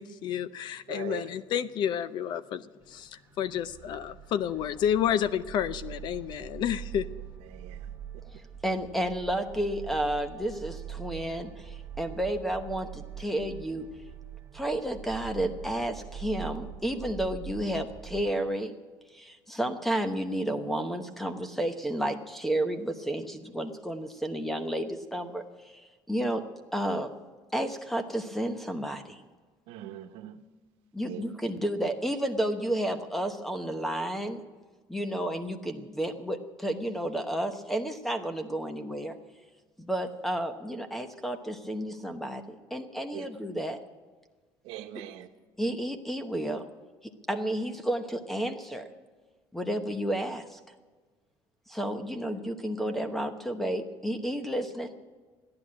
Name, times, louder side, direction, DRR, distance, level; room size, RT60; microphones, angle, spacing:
voice 1, 0.0-7.1, left 9 dB, 50° left, 15 dB, 0.6 m, -30 dB
voice 2, 0.9-1.3 7.4-7.9 8.7-8.8 29.7-30.4 31.0-31.3 43.1-43.3 44.6-45.3, right 12 dB, 85° right, 8 dB, 1.1 m, -41 dB
sound 1, 2.8-18.4, right 9 dB, 25° right, 1.2 m, -44 dB
voice 3, 8.6-13.9 14.5-18.7 19.1-26.4 26.7-27.1 27.5-29.2 30.9-34.4 34.9-39.2 39.8-43.8 45.6-46.6 47.3-48.9 49.5-50.6 51.7-54.9, right 1 dB, ahead, 9 dB, 0.9 m, -31 dB
14.5 x 10.5 x 8.6 m, 1.4 s
cardioid pair, 160°, 10 cm